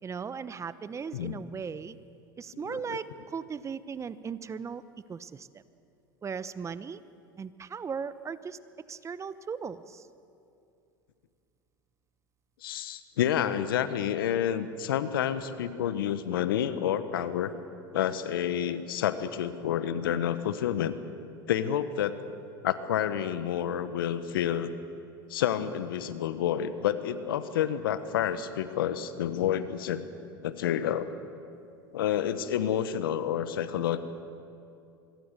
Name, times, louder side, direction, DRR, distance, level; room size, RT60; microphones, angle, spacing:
voice 1, 0.0-2.0 2.4-4.8 5.1-5.6 6.2-7.0 7.4-8.6 8.9-10.1, right 6 dB, 25° right, 15 dB, 0.9 m, -37 dB
voice 2, 2.5-3.0 12.6-17.5 17.9-21.0 21.5-22.2 22.6-24.7 25.3-30.0 30.4-31.1 31.9-34.0, left 10 dB, 80° left, 12 dB, 1.3 m, -29 dB
25.5 x 22.5 x 6.8 m, 2.6 s
hypercardioid pair, 90°, 12 cm